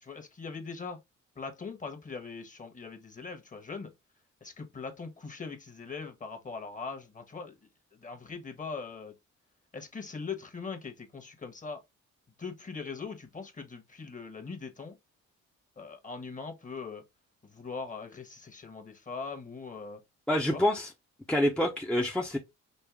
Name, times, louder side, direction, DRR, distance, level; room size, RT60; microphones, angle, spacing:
voice 1, 0.0-1.0 1.3-3.9 4.4-7.6 8.0-9.1 9.7-11.8 12.4-14.9 15.8-17.0 17.4-20.0 20.5-20.6, left 4 dB, 25° left, 1.2 m, -41 dB
voice 2, 20.3-20.9 21.3-22.4, left 1 dB, 5° left, 0.7 m, -27 dB
5.4 x 2.2 x 3.4 m
cardioid pair, 90°, 30 cm